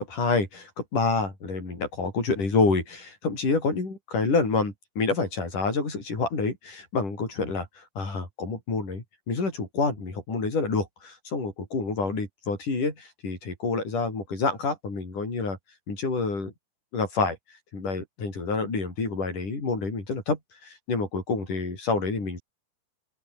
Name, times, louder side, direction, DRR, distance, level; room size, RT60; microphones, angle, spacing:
voice 1, 0.0-15.6 15.9-16.5 16.9-17.4 17.7-22.4, left 4 dB, 60° left, 9.1 m, -28 dB
open air
omnidirectional pair, 4.2 m